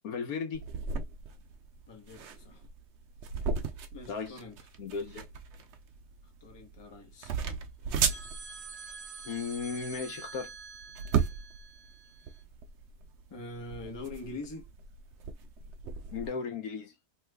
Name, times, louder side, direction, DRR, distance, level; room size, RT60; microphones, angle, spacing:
voice 1, 0.0-0.6 4.1-4.4 4.8-5.3 9.2-10.5 16.1-16.9, left 5 dB, 65° left, 1.1 m, -35 dB
sound 1, 0.5-16.3, right 6 dB, 80° right, 0.6 m, -36 dB
voice 2, 1.9-2.7 3.9-4.6 6.4-7.3 13.3-14.7, left 2 dB, 25° left, 0.7 m, -44 dB
sound 2, 8.1-12.4, right 5 dB, 50° right, 1.2 m, -46 dB
3.1 x 2.3 x 3.3 m
omnidirectional pair, 1.8 m